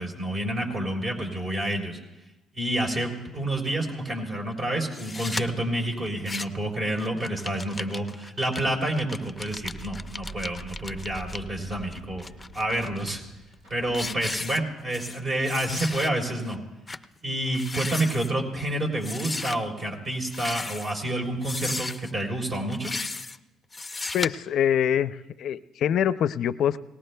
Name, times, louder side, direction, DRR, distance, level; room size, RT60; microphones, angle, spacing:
voice 1, 0.0-2.0 2.5-12.2 12.5-13.2 13.7-16.6 17.2-22.9, right 1 dB, 40° right, 2 dB, 3.7 m, -29 dB
sound 1, 4.9-5.4 6.1-6.7 7.0-11.4 11.9-13.1 13.5-13.7 13.9-15.2 15.4-16.1 16.5-16.6 16.9-17.0 17.5-18.3 19.0-19.6 20.3-21.0 21.4-22.1 22.7-23.4 23.7-24.3, left 3 dB, 20° left, 0.6 m, -35 dB
sound 2, 9.2-14.7, right 2 dB, 80° right, 7.5 m, -45 dB
voice 2, 24.1-26.8, left 9 dB, 70° left, 15 dB, 0.5 m, -24 dB
27.5 x 18.5 x 2.3 m, 1.0 s
supercardioid pair, 70°, 0 cm